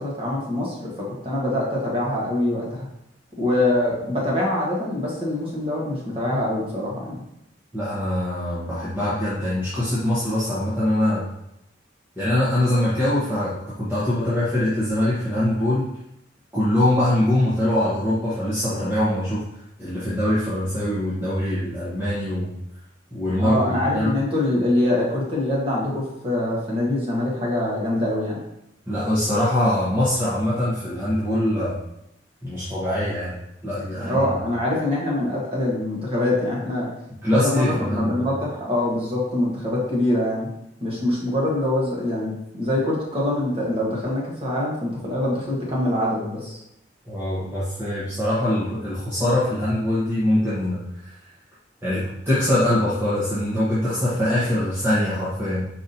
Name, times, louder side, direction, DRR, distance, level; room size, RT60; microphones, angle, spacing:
voice 1, 0.0-2.9 3.4-7.2 23.4-28.4 34.0-36.9 37.3-40.5 40.8-46.6, left 1 dB, 30° right, -3 dB, 1.3 m, -24 dB
voice 2, 7.7-11.2 12.2-15.8 16.5-19.4 19.8-22.5 23.1-24.1 28.9-31.8 32.4-33.3 33.6-34.2 37.2-38.3 47.1-51.2 51.8-55.6, left 1 dB, 15° right, -11 dB, 1.0 m, -23 dB
4.8 x 4.0 x 2.7 m, 0.82 s
head